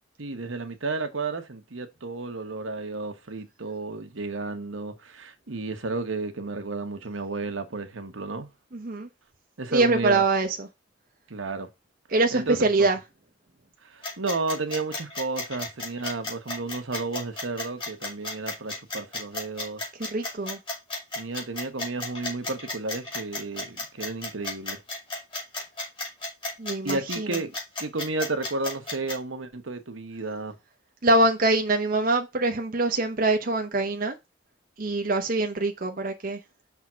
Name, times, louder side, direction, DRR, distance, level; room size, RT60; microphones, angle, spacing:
voice 1, 0.2-8.5 9.6-10.2 11.3-11.7 12.3-12.9 13.8-19.8 21.1-24.8 26.8-27.5 27.8-30.5, right 3 dB, 85° right, 1.1 m, -32 dB
voice 2, 8.7-9.1 9.7-10.7 12.1-13.0 20.0-20.6 26.6-27.3 31.0-34.1 34.8-36.4, right 2 dB, 45° right, 0.7 m, -24 dB
sound 1, 14.0-29.1, left 2 dB, 25° left, 2.6 m, -33 dB
5.9 x 3.6 x 6.0 m
head